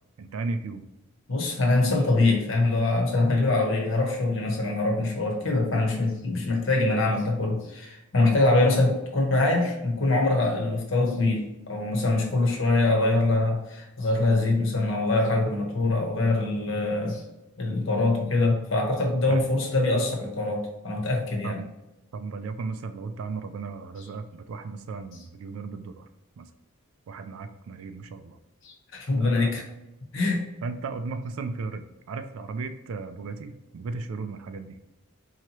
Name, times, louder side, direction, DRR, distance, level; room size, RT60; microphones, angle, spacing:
voice 1, 0.2-0.9 8.2-8.4 19.3-19.5 21.4-21.7 22.1-26.1 26.4-26.5 27.1-28.4 29.2-29.5 30.6-34.8, right 4 dB, 75° right, 9 dB, 0.3 m, -35 dB
voice 2, 1.3-17.2 17.6-21.6 28.6-29.6 30.1-30.4, left 2 dB, 60° left, 0 dB, 1.0 m, -24 dB
4.6 x 2.8 x 2.9 m, 0.96 s
head